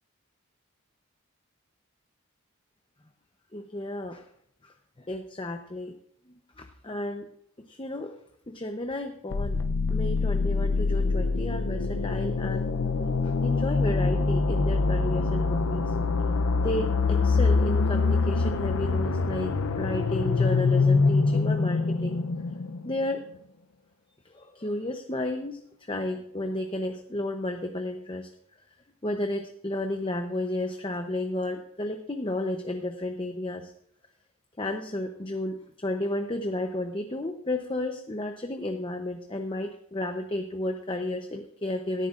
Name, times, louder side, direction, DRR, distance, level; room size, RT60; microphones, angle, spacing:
voice 1, 3.5-4.2 4.6-5.9 6.6-7.3 7.7-8.1 8.5-9.6 9.9-12.7 13.2-15.9 16.6-22.2 22.8-23.2 24.3-25.6 25.9-28.3 29.0-33.7 34.6-42.1, left 1 dB, 25° left, 4 dB, 0.8 m, -32 dB
sound 1, 9.3-23.1, left 4 dB, 70° left, 0.6 m, -25 dB
18.0 x 13.5 x 2.5 m, 0.69 s
head